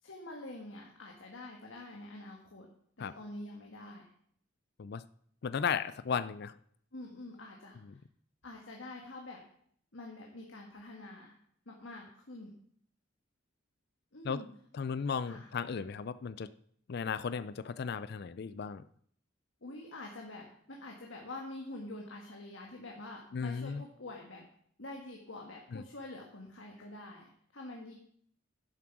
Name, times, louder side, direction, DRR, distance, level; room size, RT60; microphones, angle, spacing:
voice 1, 0.0-2.7 3.0-4.1 6.9-8.0 8.4-9.4 9.9-11.3 11.7-12.5 14.1-14.5 15.2-15.5 19.6-24.4 24.8-27.9, left 2 dB, 75° left, 0 dB, 1.7 m, -46 dB
voice 2, 5.4-6.5 7.9-8.0 14.2-14.4 14.7-16.5 16.9-18.8 23.3-23.8 25.7-25.8, left 6 dB, 55° left, 15 dB, 0.4 m, -35 dB
11.0 x 7.4 x 6.0 m, 0.63 s
head